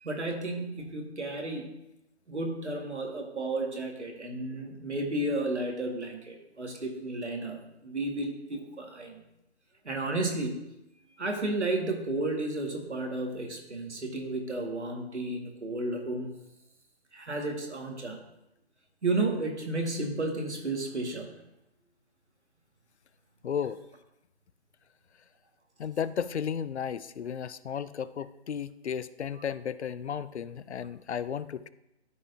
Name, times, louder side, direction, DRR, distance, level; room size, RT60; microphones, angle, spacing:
voice 1, 0.0-1.7 2.3-9.2 9.8-10.7 11.2-16.3 17.1-18.2 19.0-21.4, right 2 dB, 85° right, 2 dB, 1.9 m, -32 dB
voice 2, 23.4-23.8 25.8-31.7, left 8 dB, 75° left, 16 dB, 0.5 m, -34 dB
13.5 x 4.7 x 2.7 m, 0.88 s
figure-of-eight pair, 155°, 34 cm